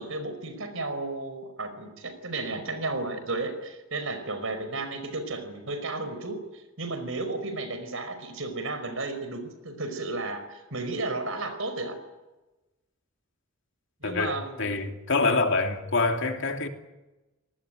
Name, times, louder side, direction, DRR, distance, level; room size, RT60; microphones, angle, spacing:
voice 1, 0.0-12.0 14.0-14.7, right 2 dB, 70° right, 5.1 m, -33 dB
voice 2, 14.0-16.7, left 3 dB, 65° left, 3.0 m, -26 dB
27.0 x 19.0 x 9.3 m
head